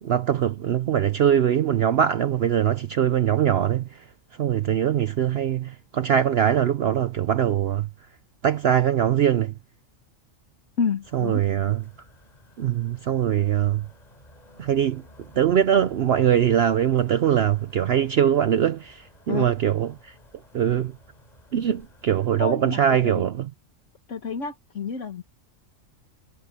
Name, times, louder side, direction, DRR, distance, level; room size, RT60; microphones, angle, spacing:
voice 1, 0.0-4.1 4.4-7.9 8.4-9.5 11.1-11.8 12.6-13.9 14.6-15.0 15.3-20.1 20.5-21.0 21.5-23.5, right 9 dB, 60° right, 0.8 m, -22 dB
voice 2, 10.8-11.4 19.3-19.5 22.4-23.2 24.1-25.2, left 5 dB, 65° left, 1.7 m, -29 dB
sound 1, 11.0-22.3, left 1 dB, 30° left, 4.4 m, -53 dB
omnidirectional pair, 1.4 m